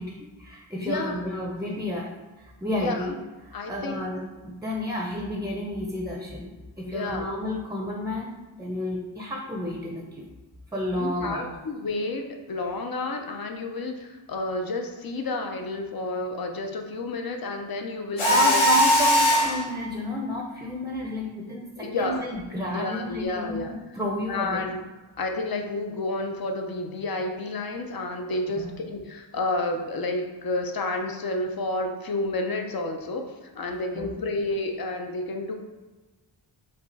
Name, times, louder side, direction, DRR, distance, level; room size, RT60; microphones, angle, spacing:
voice 1, 0.0-2.1 2.4-3.1 3.4-6.5 6.8-10.3 10.7-11.5 18.2-24.7 28.6-28.7 33.9-34.2, left 1 dB, 5° right, -1 dB, 0.6 m, -31 dB
voice 2, 0.8-1.2 2.7-3.1 3.5-4.0 6.8-7.3 11.0-18.6 21.8-22.2 22.7-23.7 24.3-24.8 25.2-35.5, left 2 dB, 50° left, 4 dB, 0.7 m, -30 dB
Mechanisms, 18.2-19.6, equal, 80° left, 1.1 m, -19 dB
4.9 x 2.3 x 4.0 m, 1.2 s
cardioid pair, 60°, 48 cm